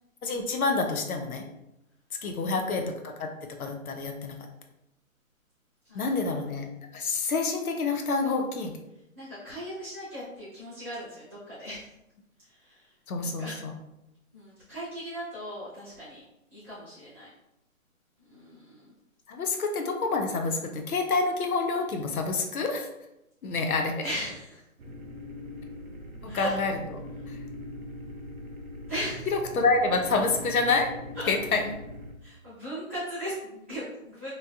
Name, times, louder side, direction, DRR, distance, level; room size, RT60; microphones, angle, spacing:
voice 1, 0.2-1.4 2.2-3.3 3.6-4.4 5.9-6.7 6.9-8.7 13.1-13.7 19.3-22.9 23.4-24.0 26.2-26.8 27.3-27.4 29.3-30.9 31.3-31.6, left 3 dB, 80° left, 4 dB, 0.7 m, -27 dB
voice 2, 2.4-2.8 5.8-6.4 9.1-11.9 12.4-12.9 13.2-13.6 14.3-16.2 16.5-17.3 18.3-18.9 24.0-24.6 26.2-26.6 28.9-29.3 31.1-31.3 32.2-34.3, equal, 10° right, -16 dB, 0.8 m, -38 dB
sound 1, 24.8-32.1, left 1 dB, 75° right, 0.8 m, -41 dB
3.1 x 2.7 x 2.3 m, 0.89 s
hypercardioid pair, 175°, 42 cm